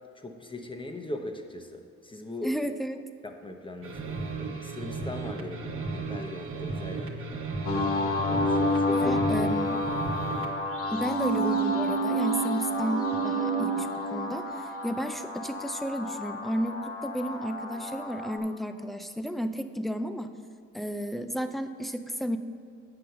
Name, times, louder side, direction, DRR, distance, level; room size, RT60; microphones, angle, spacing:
voice 1, 0.1-2.6 3.2-7.5 8.2-9.2, left 2 dB, 15° left, 5 dB, 0.9 m, -39 dB
voice 2, 2.4-3.0 8.9-9.8 10.9-14.5 14.8-20.3 20.7-22.4, equal, ahead, 8 dB, 0.4 m, -32 dB
sound 1, 3.8-10.6, right 4 dB, 45° right, 1.2 m, -35 dB
sound 2, 7.7-18.4, left 2 dB, 50° left, 1.1 m, -30 dB
sound 3, 11.1-14.8 15.2-15.3, right 10 dB, 80° right, 1.0 m, -30 dB
7.8 x 5.2 x 6.7 m, 2.3 s
cardioid pair, 90°, 30 cm